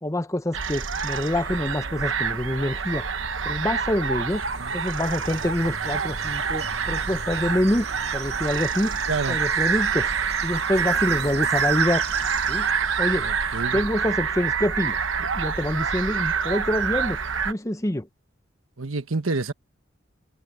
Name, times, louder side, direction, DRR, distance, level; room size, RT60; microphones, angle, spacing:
voice 1, 0.0-3.1 3.4-4.4 4.7-7.9 8.1-9.0 9.3-10.1 10.4-12.0 12.5-12.7 13.0-13.3 13.7-15.0 15.3-17.2 17.4-18.1, left 1 dB, 15° left, 1.0 m, -26 dB
sound 1, 0.5-17.5, right 6 dB, 70° right, 1.2 m, -27 dB
sound 2, 4.3-13.6, left 6 dB, 35° left, 6.8 m, -52 dB
sound 3, 5.0-12.7, right 5 dB, 50° right, 3.2 m, -40 dB
voice 2, 9.1-9.4 13.1-13.8 18.8-19.5, right 3 dB, 90° right, 1.4 m, -28 dB
head